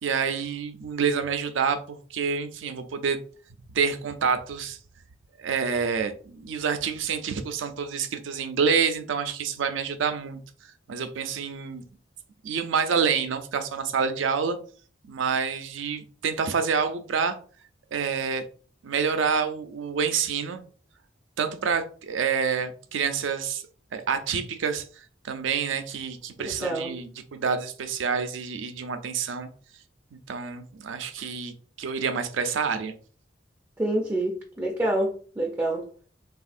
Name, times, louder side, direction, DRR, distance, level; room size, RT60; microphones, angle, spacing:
voice 1, 0.0-3.2 3.7-4.8 5.4-10.4 10.9-11.8 12.4-14.6 15.1-17.4 17.9-18.4 18.8-20.6 21.4-23.6 23.9-24.8 25.3-29.5 30.1-32.9, right 6 dB, 85° right, 8 dB, 0.4 m, -27 dB
voice 2, 26.4-26.9 33.8-35.1 35.4-35.9, right 1 dB, 10° right, -1 dB, 0.4 m, -27 dB
3.5 x 2.4 x 2.5 m, 0.43 s
head